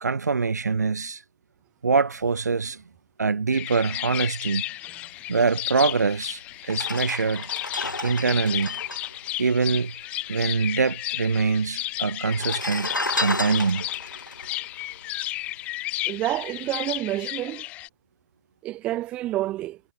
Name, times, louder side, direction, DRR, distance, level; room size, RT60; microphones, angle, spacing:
voice 1, 0.0-1.2 1.8-2.8 3.2-4.6 5.3-6.4 6.7-7.5 8.0-8.8 9.4-9.9 10.3-13.9, right 4 dB, 60° right, 0.7 m, -24 dB
sound 1, 3.5-17.9, left 16 dB, 15° left, 2.5 m, -33 dB
sound 2, 6.0-6.1 6.6-10.3 10.6-10.7 10.8-11.5 12.2-15.7 16.2-16.4, left 2 dB, 80° left, 4.1 m, -32 dB
voice 2, 16.1-17.6 18.6-19.8, right 15 dB, 10° right, 1.0 m, -28 dB
figure-of-eight pair, 150°, 10 cm